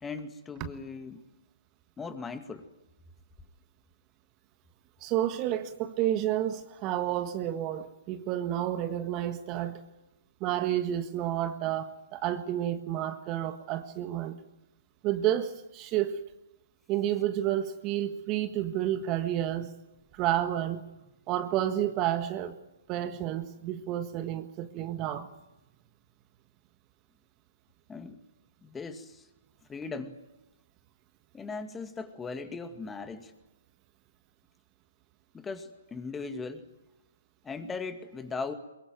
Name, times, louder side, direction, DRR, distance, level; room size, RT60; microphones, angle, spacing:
voice 1, 0.0-1.2 2.0-2.7 27.9-28.2 28.6-29.3 29.7-30.2 31.3-33.3 35.3-36.7 37.4-38.5, left 4 dB, 10° left, 2.2 m, -38 dB
voice 2, 5.0-9.8 10.4-14.4 15.0-16.2 16.9-19.7 20.1-20.8 21.3-22.6 22.9-25.3, right 12 dB, 30° right, 1.6 m, -30 dB
23.0 x 23.0 x 9.3 m
hypercardioid pair, 130°, 0 cm